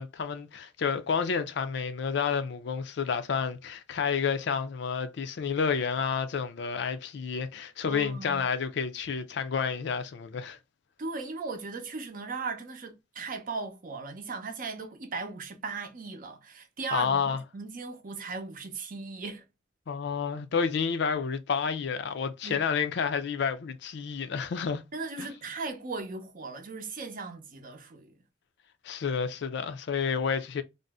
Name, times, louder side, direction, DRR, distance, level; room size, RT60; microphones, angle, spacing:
voice 1, 0.0-10.6 16.9-17.4 19.9-24.8 25.2-25.3 28.8-30.6, left 6 dB, 65° left, 0.4 m, -30 dB
voice 2, 7.9-8.4 11.0-19.4 22.4-22.6 24.9-28.1, right 4 dB, 45° right, 0.6 m, -37 dB
2.6 x 2.0 x 3.4 m
head